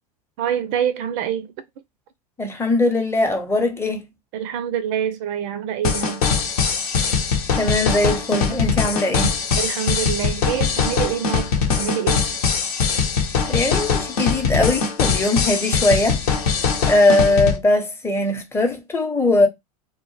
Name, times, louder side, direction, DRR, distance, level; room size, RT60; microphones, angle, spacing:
voice 1, 0.4-1.5 4.3-6.2 9.6-12.2, right 9 dB, 50° right, 0.4 m, -26 dB
voice 2, 2.4-4.1 7.5-9.4 13.5-16.2 16.9-19.5, left 2 dB, 10° left, 0.7 m, -20 dB
sound 1, 5.8-17.6, left 6 dB, 70° left, 0.8 m, -21 dB
2.1 x 2.1 x 3.1 m
hypercardioid pair, 85°, 20 cm